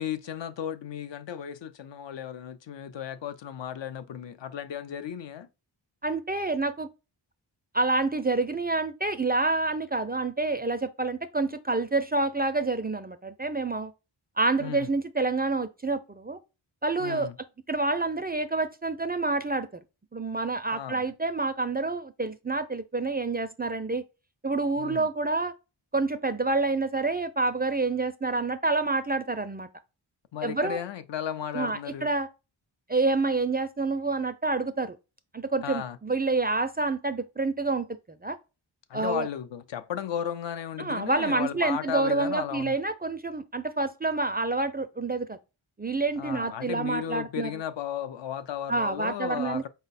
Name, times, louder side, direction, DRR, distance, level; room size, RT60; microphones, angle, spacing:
voice 1, 0.0-5.5 14.6-14.9 17.0-17.4 20.7-21.0 24.8-25.1 30.3-32.1 35.6-36.0 38.9-42.8 46.2-49.7, left 9 dB, 65° left, 0.6 m, -35 dB
voice 2, 6.0-6.9 7.7-13.9 14.4-16.4 16.8-17.3 17.7-19.7 20.1-24.0 24.4-25.5 25.9-29.7 30.4-30.8 31.5-32.3 32.9-35.0 35.3-37.9 38.2-38.4 38.9-39.3 40.8-45.4 45.8-47.5 48.7-49.7, right 3 dB, 20° right, 0.3 m, -28 dB
4.5 x 2.2 x 4.0 m
cardioid pair, 55°, 47 cm